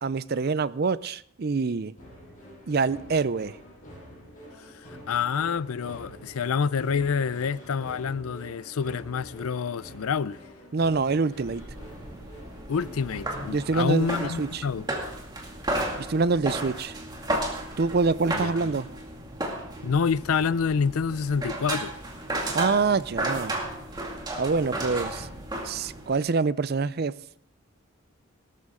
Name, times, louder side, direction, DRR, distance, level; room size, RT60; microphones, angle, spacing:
voice 1, 0.0-1.9 2.7-3.6 10.7-11.6 13.5-14.6 16.0-16.9 17.8-18.9 22.5-23.6 24.3-25.3 25.6-27.2, right 4 dB, 45° right, 0.4 m, -25 dB
sound 1, 2.0-13.8, equal, 35° left, 7.4 m, -47 dB
voice 2, 4.7-10.4 12.7-14.9 18.3-18.5 19.8-21.9, left 6 dB, 80° left, 0.5 m, -27 dB
sound 2, 11.3-26.2, right 1 dB, 20° right, 2.2 m, -34 dB
18.5 x 13.0 x 3.7 m
head